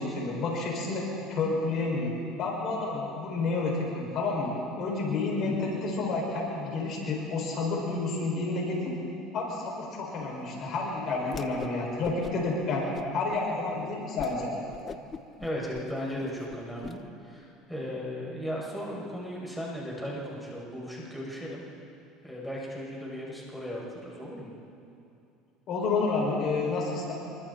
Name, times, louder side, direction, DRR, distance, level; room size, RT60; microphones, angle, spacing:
voice 1, 0.0-2.1 2.4-4.5 4.8-8.9 9.3-12.8 13.1-14.5 25.7-27.1, left 3 dB, 50° left, -2 dB, 6.4 m, -30 dB
voice 2, 5.4-5.8 15.4-21.6 22.2-24.5, equal, ahead, -5 dB, 7.1 m, -36 dB
Whoosh swoosh swish, 11.3-11.8 12.0-12.6 12.9-13.4 13.8-13.9 14.2-14.4 14.7-16.9, left 6 dB, 30° left, 1.0 m, -41 dB
27.0 x 24.5 x 4.4 m, 2.7 s
supercardioid pair, 105°, 0 cm